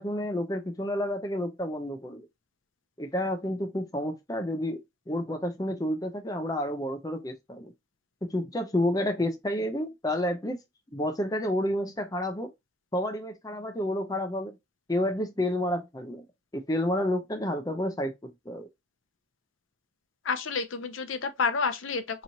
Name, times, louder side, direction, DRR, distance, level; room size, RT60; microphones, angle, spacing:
voice 1, 0.0-2.3 3.0-4.8 5.1-7.7 8.2-10.6 10.9-12.5 12.9-14.6 14.9-16.3 16.5-18.7, left 1 dB, 20° left, 0.6 m, -30 dB
voice 2, 20.2-22.2, left 5 dB, 85° left, 0.7 m, -29 dB
3.9 x 3.0 x 2.8 m
head